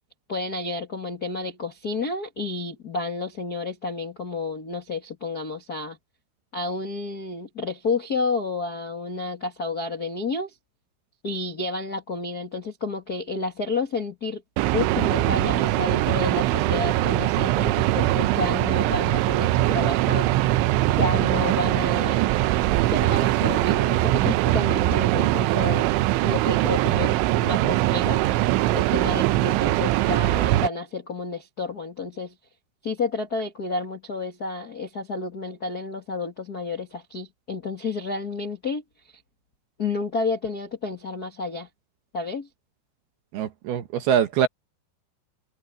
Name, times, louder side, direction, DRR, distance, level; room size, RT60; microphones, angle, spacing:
voice 1, 0.3-6.0 6.5-10.6 11.2-14.4 14.7-20.6 20.9-22.3 22.9-25.9 26.2-28.2 28.7-32.3 32.8-39.2 39.8-41.7 42.1-42.5, left 3 dB, 65° left, 0.9 m, -30 dB
sound 1, 14.6-30.7, right 16 dB, 85° right, 3.2 m, -22 dB
voice 2, 43.3-44.5, right 9 dB, 70° right, 2.7 m, -23 dB
omnidirectional pair, 5.5 m